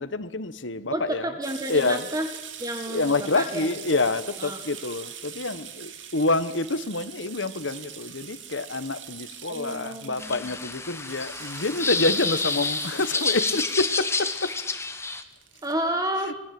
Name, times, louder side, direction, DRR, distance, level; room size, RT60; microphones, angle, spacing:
voice 1, 0.0-1.3 1.7-2.1 2.9-14.5, left 2 dB, 80° left, 1.4 m, -27 dB
voice 2, 0.9-2.3 2.6-3.7 4.4-4.6 9.5-10.3 15.6-16.4, right 1 dB, 20° right, 1.7 m, -30 dB
sound 1, 1.4-15.7, right 9 dB, 80° right, 2.6 m, -42 dB
sound 2, 10.2-15.2, left 4 dB, 15° left, 1.5 m, -29 dB
26.0 x 22.0 x 7.8 m
head